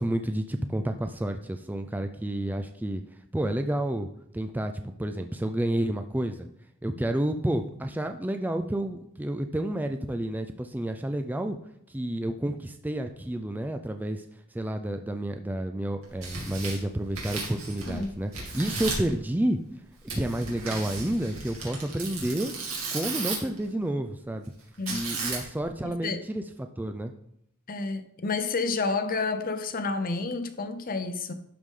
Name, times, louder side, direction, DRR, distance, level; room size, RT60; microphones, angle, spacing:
voice 1, 0.0-3.0 3.3-4.1 4.3-6.5 6.8-11.6 11.9-14.2 14.5-19.6 20.1-22.5 22.9-24.5 24.9-26.4 26.8-27.1, right 1 dB, 10° right, 0.3 m, -30 dB
Tearing, 16.0-18.0 18.3-19.1 20.1-23.6 24.9-25.7, right 3 dB, 90° right, 2.5 m, -35 dB
voice 2, 25.8-26.2 27.7-31.3, left 4 dB, 40° left, 0.7 m, -30 dB
12.0 x 4.8 x 3.7 m
head